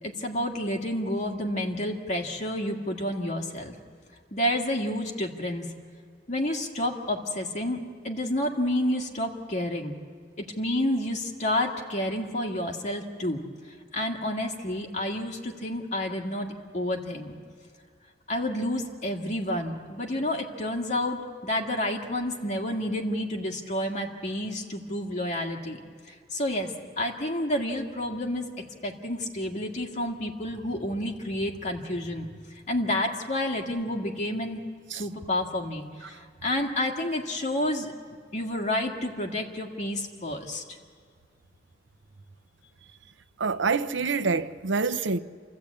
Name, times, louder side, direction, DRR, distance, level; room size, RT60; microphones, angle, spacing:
voice 1, 0.0-3.8 4.3-5.7 6.3-10.0 10.4-13.4 13.9-17.3 18.3-28.5 28.8-32.3 32.7-34.6 34.9-37.9 38.3-40.8, left 1 dB, 40° left, 1.9 m, -30 dB
voice 2, 43.4-45.2, right 4 dB, 85° right, 0.8 m, -26 dB
28.5 x 14.0 x 8.6 m
head